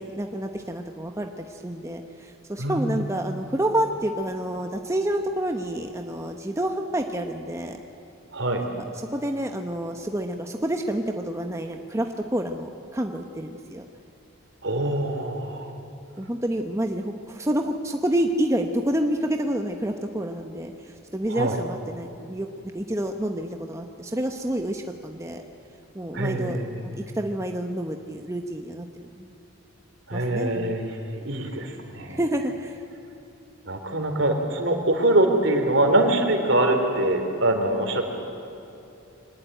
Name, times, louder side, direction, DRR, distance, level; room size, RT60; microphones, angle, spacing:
voice 1, 0.0-7.8 8.9-13.8 16.2-22.5 22.7-25.4 25.9-26.6 26.8-29.3 30.1-30.8 32.1-32.8, right 1 dB, 15° right, 4 dB, 1.0 m, -28 dB
voice 2, 2.6-2.9 8.3-8.6 14.6-15.7 21.3-21.6 26.1-26.8 30.1-32.2 33.7-38.0, right 1 dB, 65° right, 4 dB, 3.3 m, -24 dB
24.0 x 19.5 x 9.1 m, 2.9 s
head